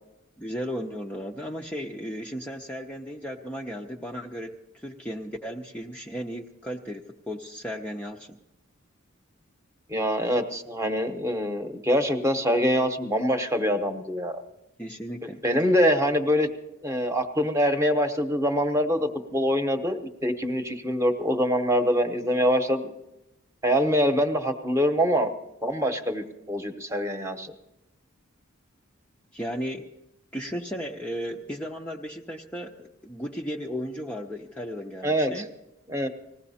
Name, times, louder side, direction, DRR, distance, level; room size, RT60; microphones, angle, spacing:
voice 1, 0.4-8.4 14.8-15.4 29.3-29.9 30.3-35.5, equal, 5° left, -1 dB, 0.6 m, -35 dB
voice 2, 9.9-14.3 15.4-16.5 16.8-22.9 23.6-25.3 25.6-27.5 35.0-35.4 35.9-36.1, equal, 15° right, 6 dB, 1.0 m, -24 dB
20.0 x 16.0 x 4.2 m, 0.90 s
head